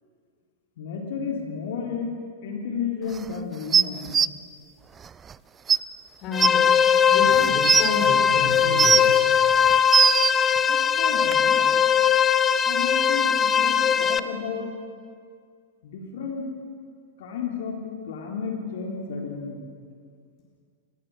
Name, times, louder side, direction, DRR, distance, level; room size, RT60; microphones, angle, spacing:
voice 1, 0.8-2.1 2.4-4.1 10.7-11.8 12.7-14.7 15.8-16.5 17.2-19.7, left 5 dB, 55° left, 1 dB, 3.6 m, -32 dB
sound 1, 3.7-4.3 5.3-5.4 5.7-5.8 6.4-6.5 7.3-7.9 8.5-9.2 9.7-10.3 11.3-11.4, right 7 dB, 20° right, 0.5 m, -19 dB
voice 2, 6.2-6.7 7.1-9.3, left 3 dB, 35° left, -2 dB, 5.5 m, -30 dB
sound 2, 6.3-14.2, left 8 dB, 20° left, 0.9 m, -20 dB
29.0 x 21.0 x 6.4 m, 2.1 s
figure-of-eight pair, 100°, 0 cm